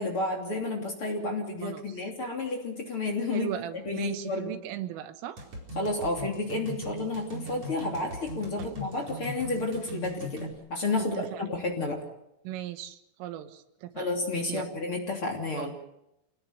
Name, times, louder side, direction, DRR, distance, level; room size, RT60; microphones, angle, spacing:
voice 1, 0.0-4.5 5.7-12.0 13.9-15.8, left 2 dB, 30° left, 3 dB, 3.1 m, -31 dB
voice 2, 1.6-2.1 3.3-5.5 8.6-8.8 11.0-11.5 12.5-14.1 14.5-14.7 15.5-15.8, right 12 dB, 90° right, 9 dB, 3.9 m, -38 dB
sound 1, 5.4-10.5, right 1 dB, 35° right, 5.3 m, -40 dB
28.5 x 18.5 x 6.5 m, 0.85 s
omnidirectional pair, 5.6 m